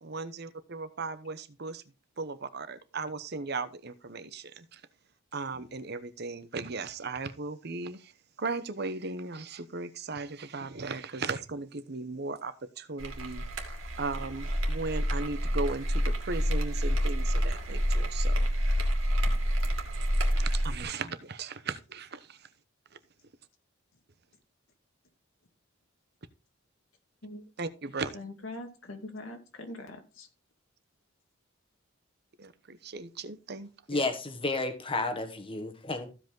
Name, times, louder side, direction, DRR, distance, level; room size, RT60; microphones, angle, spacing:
voice 1, 0.0-1.8 2.2-4.8 5.3-8.1 8.4-13.4 14.0-18.5 20.4-22.4 27.6-28.1 32.4-34.0, right 3 dB, 55° right, 0.9 m, -37 dB
sound 1, 13.0-20.8, equal, 85° right, 2.4 m, -28 dB
voice 2, 28.1-30.3, left 2 dB, 90° left, 2.3 m, -42 dB
voice 3, 33.9-36.1, left 2 dB, 25° left, 1.4 m, -31 dB
15.0 x 5.3 x 3.8 m
head